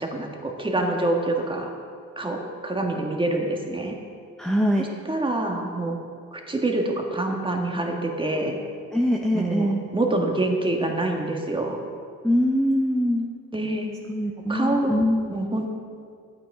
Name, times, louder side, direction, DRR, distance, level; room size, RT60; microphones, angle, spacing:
voice 1, 0.0-1.7 2.2-4.0 4.8-6.0 6.3-8.6 9.3-11.8 13.5-13.9 14.5-14.9 15.3-15.7, right 2 dB, 15° right, 1 dB, 1.6 m, -26 dB
voice 2, 4.4-4.9 8.9-9.8 12.2-13.3 14.1-15.3, equal, ahead, -1 dB, 0.9 m, -23 dB
10.5 x 8.9 x 4.9 m, 2.2 s
cardioid pair, 90°, 30 cm